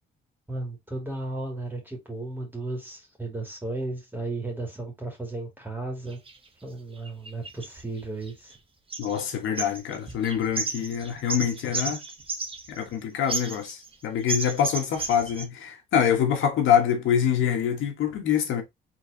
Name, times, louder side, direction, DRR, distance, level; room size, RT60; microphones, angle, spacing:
voice 1, 0.5-6.2 6.6-8.5, right 2 dB, 10° right, 2.3 m, -34 dB
sound 1, 6.1-6.4 7.1-8.6 8.9-9.3 9.6-12.9 13.3-13.9 14.3-15.5, right 3 dB, 25° right, 1.3 m, -33 dB
voice 2, 9.0-12.0 12.7-18.6, left 8 dB, 80° left, 1.4 m, -25 dB
4.6 x 3.8 x 2.8 m
cardioid pair, 90°, 20 cm